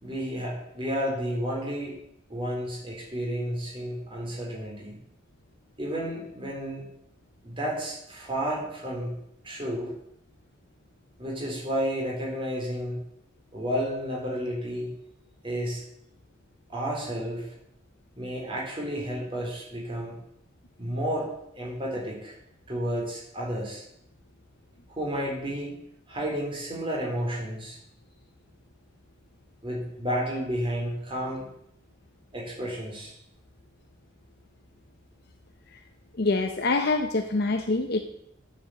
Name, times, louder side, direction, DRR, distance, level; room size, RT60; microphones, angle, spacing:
voice 1, 0.0-2.0 2.3-5.0 5.8-6.8 7.4-9.2 9.4-9.9 11.2-13.0 13.5-14.9 15.4-15.8 16.7-17.5 18.2-20.2 20.8-21.3 21.6-22.4 22.7-23.8 25.0-25.7 26.1-27.8 29.6-31.5 32.3-33.1, equal, 25° right, -3 dB, 3.8 m, -31 dB
voice 2, 36.1-38.0, left 3 dB, 50° left, 5 dB, 0.7 m, -25 dB
9.9 x 7.1 x 7.8 m, 0.77 s
head